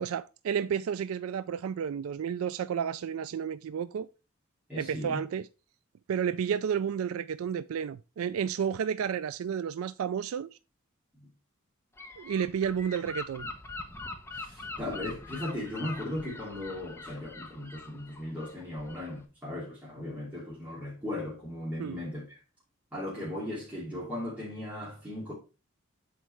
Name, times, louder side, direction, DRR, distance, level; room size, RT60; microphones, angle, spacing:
voice 1, 0.0-4.1 4.8-5.5 6.1-10.5 12.2-13.5 21.8-22.0, right 7 dB, 90° right, 0.3 m, -31 dB
voice 2, 4.7-5.2 11.2-11.3 14.3-22.4 22.9-25.3, left 1 dB, 5° right, 2.8 m, -37 dB
Gull seagull / Wind, 12.0-19.2, left 3 dB, 10° left, 0.8 m, -43 dB
8.3 x 4.6 x 4.4 m
head